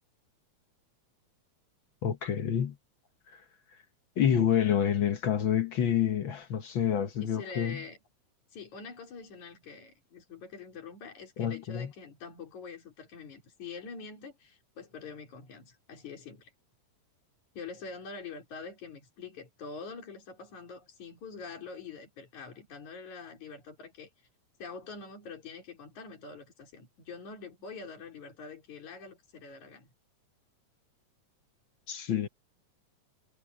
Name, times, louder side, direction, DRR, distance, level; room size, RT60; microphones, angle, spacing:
voice 1, 2.0-2.8 3.3-3.4 4.2-7.8 11.4-11.9 31.9-32.3, left 9 dB, 55° left, 1.5 m, -28 dB
voice 2, 7.2-8.0 8.5-16.5 17.6-24.1 24.6-29.9, left 5 dB, 75° left, 5.1 m, -45 dB
omnidirectional pair, 3.4 m